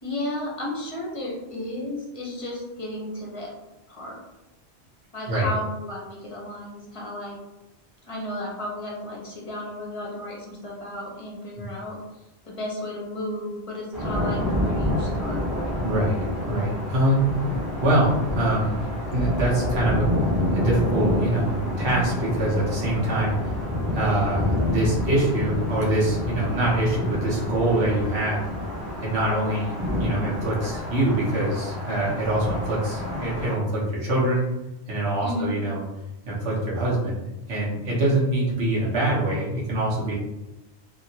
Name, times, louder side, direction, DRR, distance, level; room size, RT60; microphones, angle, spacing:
voice 1, 0.0-3.5 3.9-4.2 5.1-7.4 8.0-12.0 12.4-15.4 35.2-35.6, left 1 dB, 35° left, -3 dB, 0.8 m, -33 dB
sound 1, 13.9-33.5, left 1 dB, ahead, 0.7 m, -28 dB
voice 2, 15.8-16.2 16.5-18.8 19.1-20.1 20.5-23.5 23.9-28.4 29.0-29.7 30.0-34.4 34.9-35.8 36.3-40.1, right 1 dB, 70° right, -6 dB, 1.2 m, -24 dB
2.8 x 2.7 x 2.7 m, 0.97 s
omnidirectional pair, 1.1 m